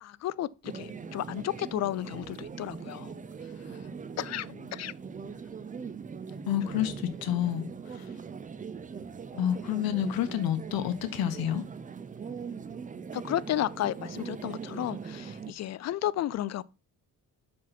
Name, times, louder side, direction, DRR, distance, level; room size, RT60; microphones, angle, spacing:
voice 1, 0.0-3.1 4.2-4.9 13.1-16.6, left 13 dB, 50° left, 0.4 m, -33 dB
sound 1, 0.6-15.5, right 6 dB, 20° right, 0.5 m, -41 dB
voice 2, 3.6-4.2 4.7-4.8 6.5-8.2 9.3-11.6, left 10 dB, 80° left, 1.2 m, -30 dB
7.4 x 5.8 x 4.2 m
cardioid pair, 135°, 36 cm